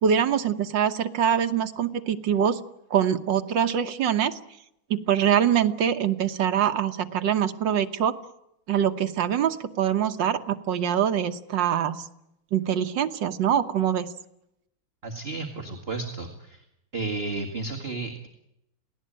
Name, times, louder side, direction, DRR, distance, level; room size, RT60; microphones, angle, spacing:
voice 1, 0.0-2.6 2.9-4.4 4.9-8.2 8.7-12.0 12.5-14.1, right 9 dB, 65° right, 8 dB, 1.8 m, -24 dB
voice 2, 15.0-16.6 16.9-18.3, right 3 dB, 30° right, 2 dB, 2.1 m, -32 dB
28.0 x 18.0 x 8.9 m, 0.83 s
omnidirectional pair, 2.2 m